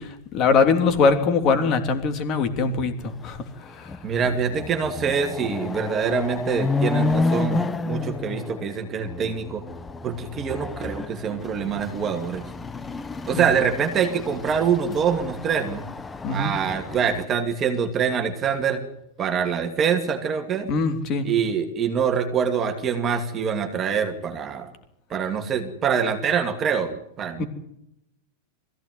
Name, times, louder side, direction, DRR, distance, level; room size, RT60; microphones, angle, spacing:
voice 1, 0.0-4.0 13.3-13.5 16.2-16.5 20.7-21.3 27.4-27.5, left 4 dB, 35° left, 8 dB, 3.1 m, -22 dB
Chatter / Car passing by / Motorcycle, 3.2-3.3 3.7-17.2, left 3 dB, 10° left, 0.9 m, -31 dB
voice 2, 4.0-9.6 10.0-12.5 13.3-15.8 16.3-18.8 19.2-20.7 21.2-24.7 25.1-27.4, right 7 dB, 25° right, 5 dB, 2.4 m, -25 dB
21.5 x 16.0 x 9.5 m, 0.80 s
supercardioid pair, 150°, 0 cm